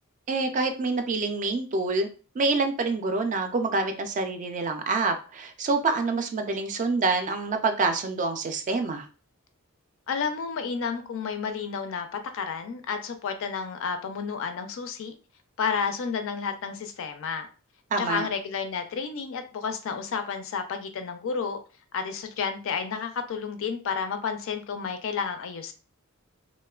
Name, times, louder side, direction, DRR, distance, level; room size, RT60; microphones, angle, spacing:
voice 1, 0.3-2.1 2.4-9.1 17.9-18.3, right 3 dB, 35° right, 6 dB, 0.3 m, -26 dB
voice 2, 10.1-15.1 15.6-17.5 18.0-21.6 21.9-25.7, left 6 dB, 60° left, 8 dB, 0.4 m, -31 dB
3.0 x 2.1 x 2.3 m, 0.36 s
head